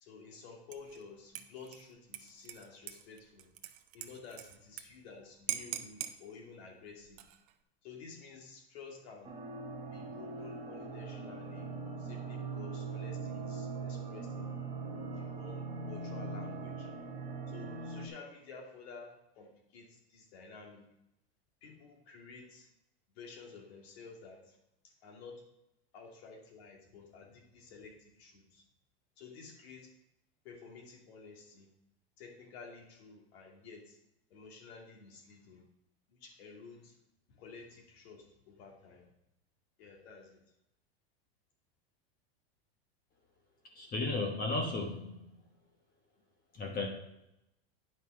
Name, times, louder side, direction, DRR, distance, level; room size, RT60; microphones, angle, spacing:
voice 1, 0.0-3.5 3.9-7.2 7.8-9.4 9.9-14.5 15.2-16.9 17.5-20.9 21.6-22.7 23.1-24.6 24.8-25.4 25.9-28.6 29.2-29.9 30.4-31.7 32.2-34.0 34.3-35.6 36.1-36.9 37.3-39.0 39.8-40.4, left 4 dB, 70° left, 1 dB, 2.5 m, -52 dB
Dishes pots and pans / Liquid, 0.7-1.0 1.3-4.8 5.1-5.2 5.5-6.2 7.0-7.5, right 12 dB, 50° right, 0.7 m, -42 dB
sound 1, 9.2-18.1, right 4 dB, 15° right, 1.7 m, -41 dB
voice 2, 43.7-45.4 46.5-46.9, left 3 dB, 25° left, 2 dB, 1.1 m, -34 dB
9.7 x 5.4 x 4.6 m, 0.86 s
supercardioid pair, 140°, 32 cm